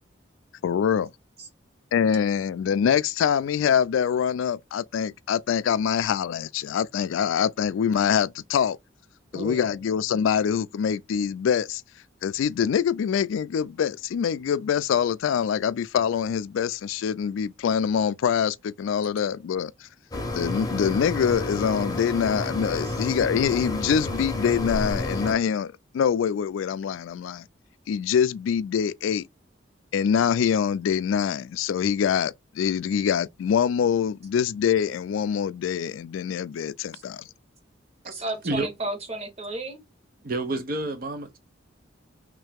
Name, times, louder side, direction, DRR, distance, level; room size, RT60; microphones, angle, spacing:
voice 1, 0.6-1.1 1.9-8.8 9.3-11.8 12.2-19.7 20.3-27.4 27.9-29.2 29.9-37.2, left 7 dB, 85° left, 0.3 m, -24 dB
voice 2, 9.3-9.8 22.8-23.0 36.9-37.0 38.0-39.8, right 2 dB, 30° right, 1.0 m, -33 dB
sound 1, 20.1-25.3, left 1 dB, 20° left, 0.7 m, -30 dB
voice 3, 40.2-41.4, right 2 dB, 50° right, 0.5 m, -28 dB
3.2 x 2.8 x 3.5 m
head